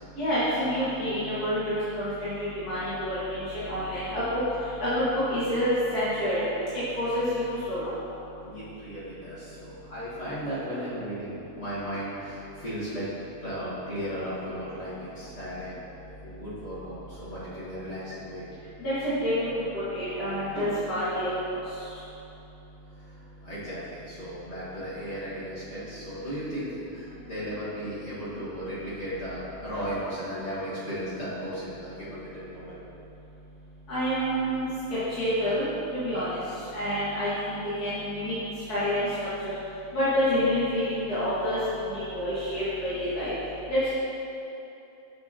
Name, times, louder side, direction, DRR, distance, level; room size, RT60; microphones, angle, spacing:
voice 1, 0.1-4.4 4.8-6.5 6.7-7.8 18.8-21.4 33.9-34.7 35.1-36.4 36.7-38.3 38.7-39.1 39.4-39.5 39.9-43.3 43.7-43.9, equal, 75° left, -14 dB, 2.3 m, -28 dB
voice 2, 8.4-13.1 13.4-15.7 16.2-18.5 22.9-32.8, equal, 45° left, -13 dB, 1.9 m, -36 dB
7.3 x 7.0 x 2.8 m, 3.0 s
omnidirectional pair, 1.6 m